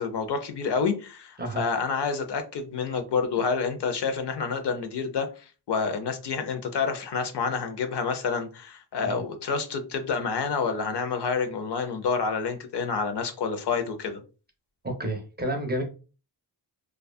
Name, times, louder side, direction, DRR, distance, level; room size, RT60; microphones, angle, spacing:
voice 1, 0.0-14.2, left 5 dB, 65° left, 0.5 m, -28 dB
voice 2, 14.8-15.8, right 1 dB, 25° right, 0.5 m, -30 dB
2.5 x 2.3 x 2.2 m
wide cardioid pair, 135°, 44 cm